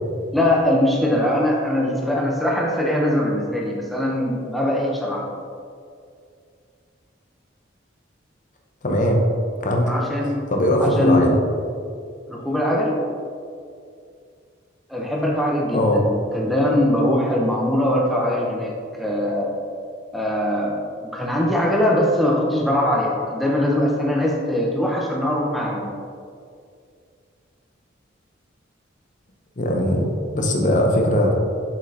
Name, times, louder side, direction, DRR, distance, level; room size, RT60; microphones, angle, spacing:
voice 1, 0.3-5.3 9.8-10.4 10.8-11.4 12.3-13.0 14.9-19.6 20.1-25.9, left 1 dB, ahead, -2 dB, 0.7 m, -21 dB
voice 2, 8.8-9.3 9.6-9.9 10.5-11.3 15.7-16.1 29.6-31.4, equal, 40° left, 1 dB, 0.8 m, -19 dB
7.2 x 5.3 x 2.8 m, 2.3 s
head